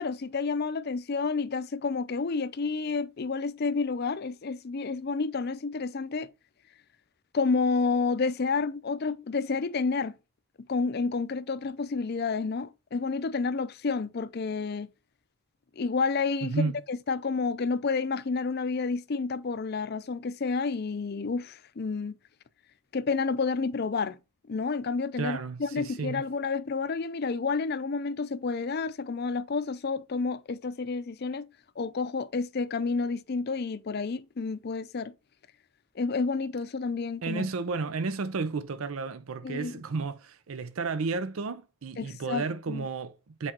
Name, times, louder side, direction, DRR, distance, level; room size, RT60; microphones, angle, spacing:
voice 1, 0.0-6.3 7.3-10.2 10.7-14.9 15.8-16.6 16.9-22.2 22.9-24.2 24.5-31.5 31.8-35.1 36.0-37.5 39.4-39.7 42.0-42.8, left 4 dB, 50° left, 0.5 m, -30 dB
voice 2, 16.4-16.8 25.2-26.2 37.2-43.5, right 4 dB, 75° right, 0.5 m, -32 dB
7.9 x 4.8 x 2.9 m
head